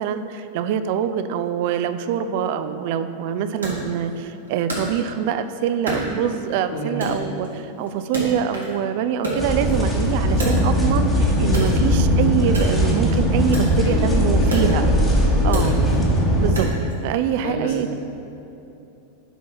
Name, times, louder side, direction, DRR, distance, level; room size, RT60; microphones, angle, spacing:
voice 1, 0.0-14.9 15.4-15.9 16.4-16.7 17.0-17.9, right 8 dB, 50° right, 10 dB, 0.3 m, -24 dB
Wood, 3.6-5.4 5.9-6.6 7.0-8.8 9.1-11.0 11.5-17.0, right 1 dB, 75° right, 1.5 m, -30 dB
sound 1, 9.4-16.5, equal, 10° left, 1.0 m, -19 dB
voice 2, 13.8-16.0 17.4-17.9, equal, 55° left, -1 dB, 1.1 m, -29 dB
4.9 x 4.6 x 6.0 m, 2.9 s
figure-of-eight pair, 90°, 0 cm